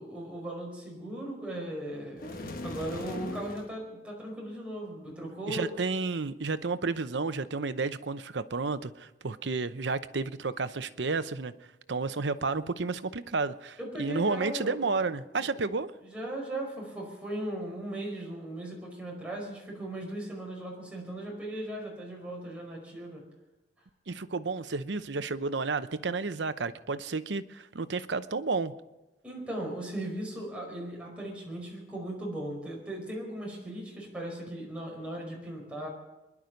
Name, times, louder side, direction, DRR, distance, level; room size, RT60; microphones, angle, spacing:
voice 1, 0.0-2.3 2.6-5.7 13.8-15.0 15.4-15.5 16.0-23.2 29.2-35.9, right 1 dB, 5° right, -3 dB, 5.2 m, -38 dB
sound 1, 2.2-3.7, left 1 dB, 50° left, 1.4 m, -39 dB
voice 2, 5.5-11.5 11.9-15.9 24.1-28.7, right 4 dB, 80° right, 12 dB, 0.8 m, -31 dB
24.5 x 11.0 x 5.2 m, 1.0 s
head